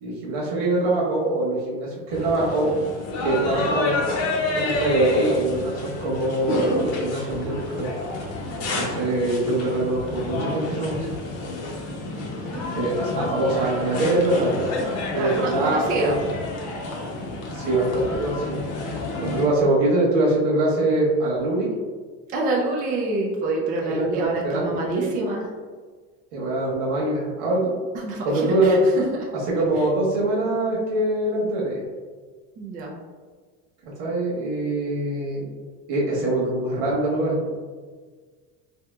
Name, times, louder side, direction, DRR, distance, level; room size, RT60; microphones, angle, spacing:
voice 1, 0.0-2.7 3.2-4.0 4.5-7.9 8.7-11.1 12.7-14.7 15.1-16.2 17.5-18.6 19.2-21.7 23.9-24.1 24.4-25.3 26.3-27.8 28.2-28.8 29.5-31.8 34.0-35.5 35.9-37.4, right 2 dB, 80° right, -4 dB, 1.3 m, -23 dB
sound 1, 2.1-19.5, left 2 dB, 55° left, 0.7 m, -29 dB
voice 2, 12.1-12.8 15.1-16.1 22.3-25.4 28.0-29.0 32.6-32.9, right 3 dB, 30° right, -1 dB, 0.3 m, -27 dB
3.4 x 2.8 x 2.3 m, 1.5 s
cardioid pair, 160°, 32 cm